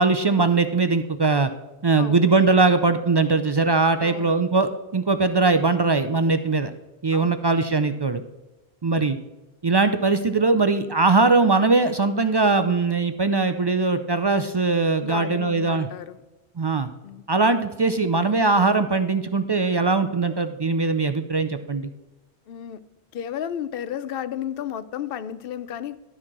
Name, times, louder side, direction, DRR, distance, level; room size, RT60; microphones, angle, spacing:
voice 1, 0.0-1.5 1.8-6.7 7.0-8.2 8.8-9.2 9.6-15.9 16.6-16.9 17.3-21.9, right 3 dB, 45° right, 9 dB, 0.3 m, -21 dB
voice 2, 2.0-2.3 4.0-4.5 7.1-7.4 15.0-16.2 17.0-17.2 22.5-22.8 23.1-26.0, left 9 dB, 65° left, 15 dB, 0.7 m, -33 dB
12.5 x 4.4 x 6.0 m, 1.1 s
omnidirectional pair, 1.1 m